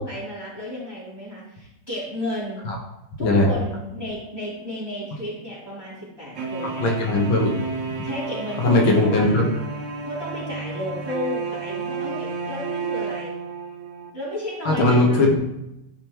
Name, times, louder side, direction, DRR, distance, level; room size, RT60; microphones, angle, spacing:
voice 1, 0.0-2.7 3.2-6.9 8.0-9.4 10.1-13.3 14.1-15.3, left 1 dB, 10° right, -9 dB, 3.0 m, -32 dB
voice 2, 3.2-3.5 6.8-7.6 8.6-9.5 14.7-15.3, left 2 dB, 70° left, 0 dB, 2.2 m, -19 dB
sound 1, 6.3-14.1, right 4 dB, 50° right, 1.0 m, -31 dB
12.5 x 5.2 x 3.1 m, 0.88 s
omnidirectional pair, 2.3 m